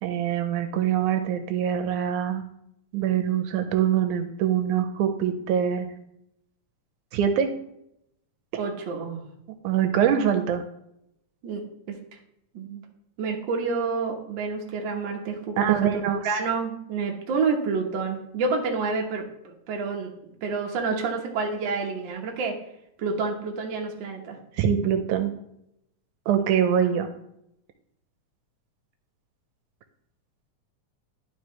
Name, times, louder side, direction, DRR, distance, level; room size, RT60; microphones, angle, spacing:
voice 1, 0.0-2.5 2.9-5.9 7.1-7.5 9.6-10.6 15.6-16.2 24.5-25.3 26.3-27.1, right 9 dB, 80° right, 8 dB, 2.0 m, -24 dB
voice 2, 8.6-9.2 11.4-12.0 12.5-12.8 13.2-22.5 23.0-24.4, right 4 dB, 65° right, 1 dB, 1.2 m, -29 dB
11.0 x 4.7 x 3.2 m, 0.78 s
omnidirectional pair, 3.6 m